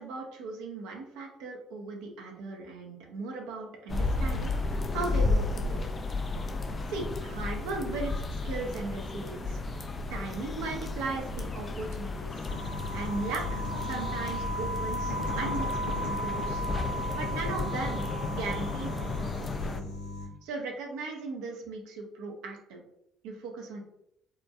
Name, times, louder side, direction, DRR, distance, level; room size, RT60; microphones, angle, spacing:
voice 1, 0.0-5.9 6.9-9.6 10.1-12.5 12.9-15.7 16.0-16.6 17.1-19.9 20.4-22.8 23.2-23.8, right 3 dB, 75° right, 1 dB, 0.4 m, -37 dB
sound 1, 3.9-19.8, left 3 dB, 35° left, 0.3 m, -33 dB
sound 2, 12.5-20.3, equal, 85° left, 0.5 m, -35 dB
2.8 x 2.1 x 2.4 m, 0.78 s
hypercardioid pair, 55°, 0 cm